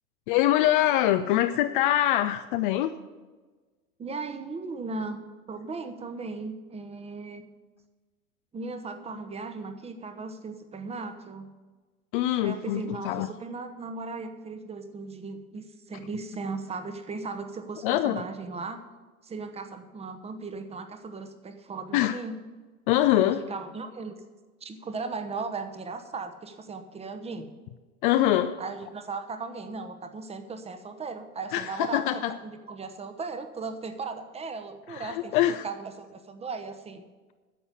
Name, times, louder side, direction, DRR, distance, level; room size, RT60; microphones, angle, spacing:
voice 1, 0.3-3.0 12.1-13.3 17.8-18.2 21.9-22.2 22.9-23.4 28.0-28.6 31.5-32.3 34.9-35.7, left 13 dB, 40° left, 10 dB, 0.5 m, -24 dB
voice 2, 4.0-5.2 5.5-7.4 8.5-11.5 12.4-18.8 19.2-22.4 23.4-24.2 24.6-27.5 28.6-35.4 35.6-37.0, right 4 dB, 15° right, 8 dB, 0.9 m, -37 dB
10.0 x 6.9 x 8.0 m, 1.3 s
hypercardioid pair, 100°, 43 cm